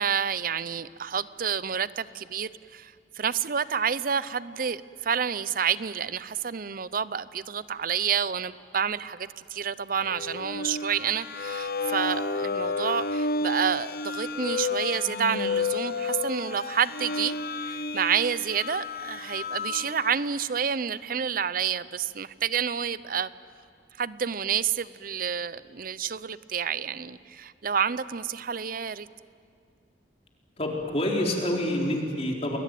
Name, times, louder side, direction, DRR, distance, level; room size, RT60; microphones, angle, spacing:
voice 1, 0.0-17.4 17.6-23.3 24.0-29.1, right 7 dB, 55° right, 17 dB, 0.6 m, -29 dB
sound 1, 10.0-20.3, left 3 dB, 60° left, 1.0 m, -31 dB
voice 2, 30.6-32.6, left 1 dB, 35° left, 0 dB, 4.2 m, -27 dB
29.5 x 21.0 x 9.3 m, 2.3 s
head